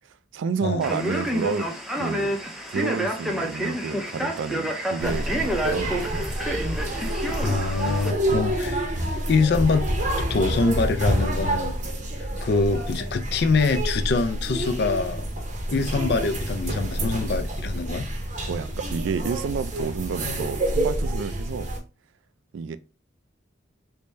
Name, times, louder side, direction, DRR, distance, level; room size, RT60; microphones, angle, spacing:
voice 1, 0.3-1.7 2.0-2.4 2.7-6.2 18.5-21.7 22.5-22.8, right 6 dB, 90° right, 0.4 m, -30 dB
Male speech man speaking, 0.8-8.1, equal, ahead, 0.5 m, -29 dB
sound 1, 5.0-21.8, right 1 dB, 40° right, 0.7 m, -28 dB
voice 2, 7.4-9.9 10.2-11.7 12.4-15.3 15.7-18.1, left 4 dB, 60° left, 0.4 m, -24 dB
3.3 x 2.6 x 3.1 m
head